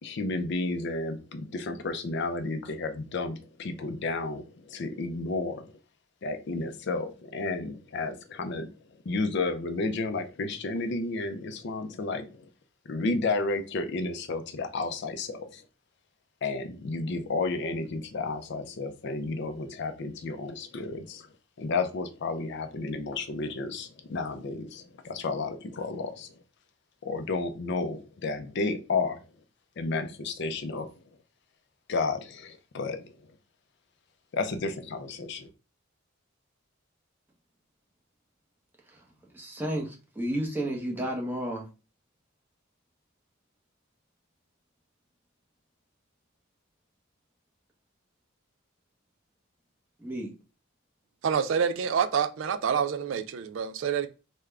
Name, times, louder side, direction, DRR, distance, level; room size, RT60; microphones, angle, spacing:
voice 1, 0.0-5.7 6.2-8.7 9.1-12.4 12.9-15.6 16.4-21.3 21.6-26.3 27.0-29.2 29.8-30.9 31.9-33.1 34.3-35.5, left 3 dB, 55° left, 0.4 m, -32 dB
voice 2, 39.3-41.7 50.0-50.3, right 1 dB, 10° right, 0.8 m, -32 dB
voice 3, 51.2-54.1, right 7 dB, 65° right, 0.3 m, -27 dB
3.6 x 2.2 x 3.2 m
head